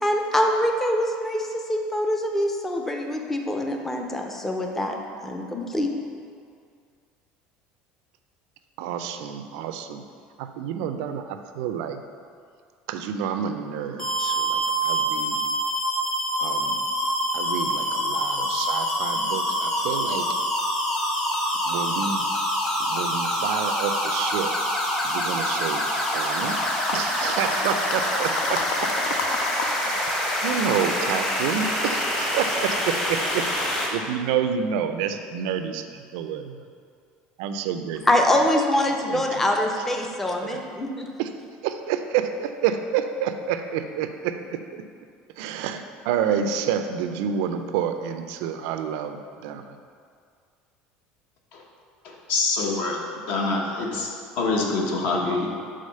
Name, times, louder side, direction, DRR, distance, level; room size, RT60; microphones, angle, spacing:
voice 1, 0.0-5.0 5.2-5.9 38.1-41.1, left 1 dB, 10° left, 2 dB, 0.5 m, -24 dB
voice 2, 8.8-10.0 10.4-12.0 12.9-15.4 16.4-16.9 17.3-20.4 21.6-22.3 22.9-24.5 25.0-25.8 26.1-26.6 26.9-29.2 29.6-33.5 33.9-36.6 37.4-38.0 39.1-39.5 40.4-40.6 41.2-41.3 41.6-44.8 45.4-49.8, right 8 dB, 80° right, 8 dB, 0.4 m, -29 dB
sound 1, 14.0-33.9, equal, 25° left, 1.1 m, -26 dB
sound 2, 26.5-29.7 30.0-31.4 32.0-32.1, left 5 dB, 80° left, 0.5 m, -32 dB
voice 3, 52.0-53.0 53.3-55.5, left 3 dB, 60° left, 0 dB, 0.9 m, -25 dB
4.9 x 3.8 x 5.4 m, 2.2 s
cardioid pair, 150°, 3 cm